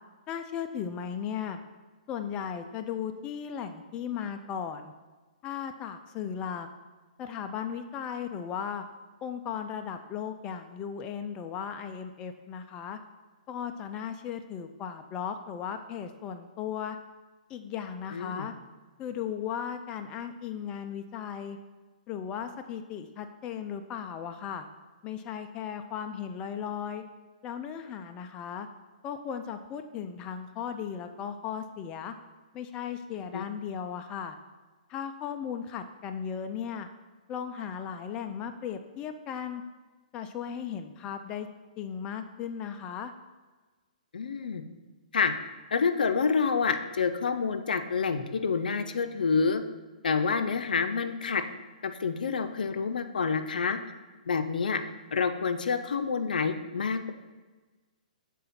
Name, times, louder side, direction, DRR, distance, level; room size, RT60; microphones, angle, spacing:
voice 1, 0.3-1.6 2.1-4.9 5.4-6.7 7.2-8.8 9.2-13.0 13.5-17.0 17.5-18.5 19.0-21.6 22.1-24.7 25.0-27.0 27.4-28.7 29.0-32.1 32.5-34.4 34.9-36.9 37.3-39.6 40.1-41.5 41.8-43.1, left 8 dB, 20° left, 7 dB, 0.3 m, -36 dB
voice 2, 18.1-18.5 33.3-33.5 44.1-44.6 45.1-45.3 45.7-49.6 50.0-51.4 51.8-53.8 54.3-54.8 55.1-57.1, left 5 dB, 85° left, 9 dB, 0.5 m, -28 dB
7.2 x 3.8 x 4.2 m, 1.3 s
hypercardioid pair, 150°, 5 cm